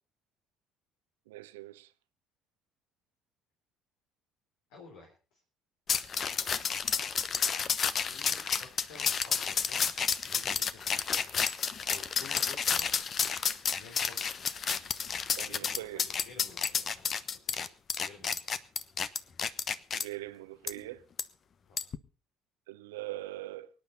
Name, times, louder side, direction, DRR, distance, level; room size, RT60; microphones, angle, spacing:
voice 1, 1.3-1.9 15.4-16.0 19.9-21.0 22.7-23.7, right 17 dB, 75° right, 0.8 m, -42 dB
voice 2, 4.7-5.4 8.1-11.1 11.8-12.9 13.7-14.5 15.4-18.4 21.7-21.8, left 4 dB, 65° left, 3.9 m, -53 dB
sound 1, 5.9-20.0 20.7-20.8 21.2-21.3 21.8-22.0, left 6 dB, 45° left, 1.1 m, -31 dB
24.0 x 10.0 x 4.1 m
figure-of-eight pair, 55°, 0 cm